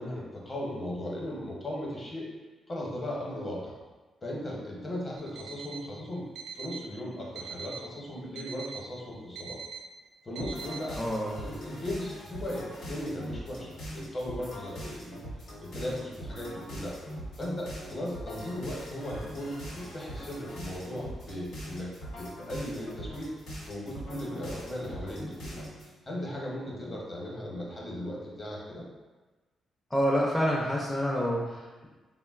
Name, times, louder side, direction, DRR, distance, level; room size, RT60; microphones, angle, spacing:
voice 1, 0.0-2.3 2.7-3.7 4.2-6.3 6.5-9.6 10.2-11.0 11.4-15.2 15.6-17.0 17.4-23.3 23.7-25.7 26.0-28.9, left 1 dB, 30° left, -4 dB, 0.8 m, -37 dB
Alarm, 5.2-5.9 6.4-6.9 7.4-7.9 8.4-8.9 9.4-9.9 10.4-10.9, right 6 dB, 85° right, 0.4 m, -42 dB
sound 1, 10.4-25.9, equal, 90° left, 0.8 m, -42 dB
voice 2, 11.0-11.5 29.9-31.9, equal, 10° left, -4 dB, 0.4 m, -28 dB
3.7 x 2.1 x 2.3 m, 1.3 s
cardioid pair, 95°, 0 cm